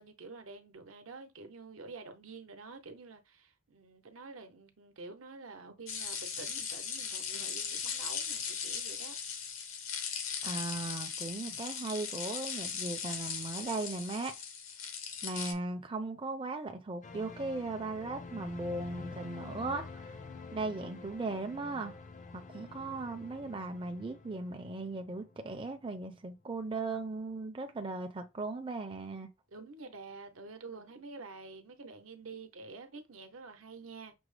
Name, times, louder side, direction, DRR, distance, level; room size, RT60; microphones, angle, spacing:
voice 1, 0.0-9.2 29.5-34.1, right 3 dB, 80° right, 0.8 m, -48 dB
sound 1, 5.9-15.5, left 7 dB, 80° left, 0.8 m, -38 dB
voice 2, 10.4-14.4 15.2-20.2 20.5-21.9 22.3-29.3, right 3 dB, 25° right, 0.4 m, -38 dB
sound 2, 17.0-26.2 26.4-26.6, left 3 dB, 40° left, 0.5 m, -48 dB
6.0 x 2.0 x 3.2 m
head